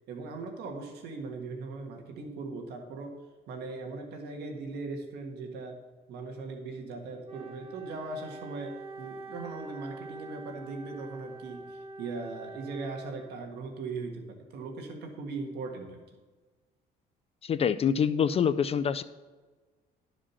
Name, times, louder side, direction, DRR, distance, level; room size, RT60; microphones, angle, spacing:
voice 1, 0.1-3.2 3.5-5.8 6.1-16.0, right 3 dB, 75° right, 2 dB, 1.7 m, -39 dB
Wind instrument woodwind instrument, 7.2-13.6, right 2 dB, 35° right, 1.3 m, -45 dB
voice 2, 17.4-19.0, left 7 dB, 35° left, 14 dB, 0.4 m, -26 dB
12.5 x 5.0 x 5.7 m, 1.3 s
cardioid pair, 110°, 17 cm